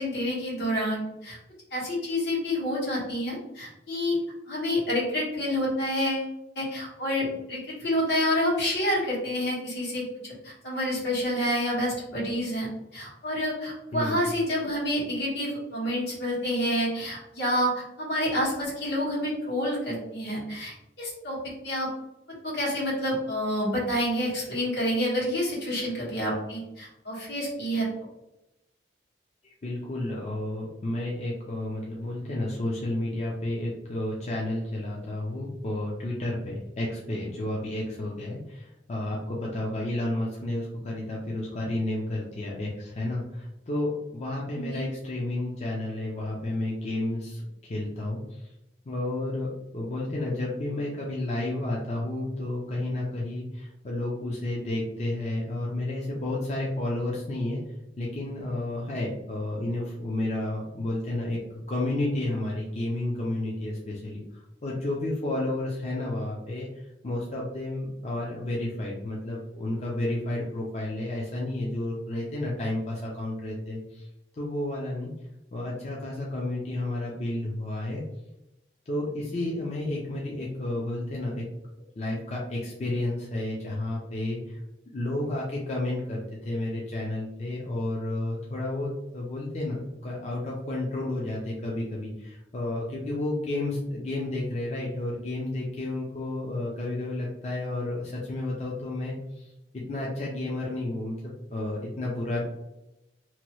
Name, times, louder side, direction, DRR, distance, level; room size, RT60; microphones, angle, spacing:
voice 1, 0.0-1.4 1.7-4.2 4.5-6.3 6.5-21.4 21.6-21.9 22.4-27.9 44.5-44.8, equal, 75° left, -6 dB, 1.4 m, -28 dB
voice 2, 29.4-48.2 48.9-57.6 58.0-61.4 61.7-64.2 64.6-66.7 67.0-74.1 74.4-75.1 75.5-78.0 78.9-81.4 82.0-84.6 84.9-99.5 99.7-102.4, left 1 dB, 40° left, -3 dB, 0.4 m, -31 dB
2.9 x 2.2 x 3.0 m, 0.91 s
head